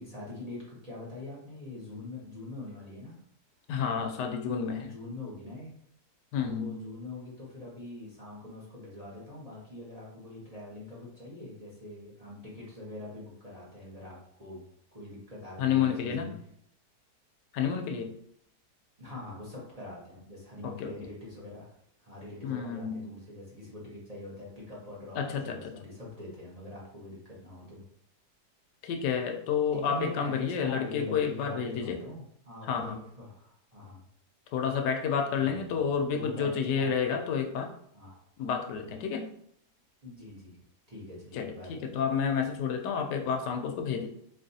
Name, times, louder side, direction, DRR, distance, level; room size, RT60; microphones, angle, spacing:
voice 1, 0.0-3.1 4.8-5.7 6.4-14.6 14.9-16.3 19.0-21.7 22.0-25.2 25.4-27.8 29.7-34.0 35.4-37.1 37.9-38.2 40.0-40.6 40.9-41.7, left 1 dB, 25° right, -6 dB, 1.0 m, -43 dB
voice 2, 3.7-4.9 6.3-6.8 15.6-16.3 17.5-18.1 20.6-21.1 22.4-23.1 25.2-25.7 28.8-32.0 32.6-33.0 34.5-37.7 38.4-39.3 41.3-44.1, left 7 dB, 80° left, 5 dB, 1.2 m, -30 dB
4.0 x 3.2 x 2.7 m, 0.68 s
omnidirectional pair, 1.8 m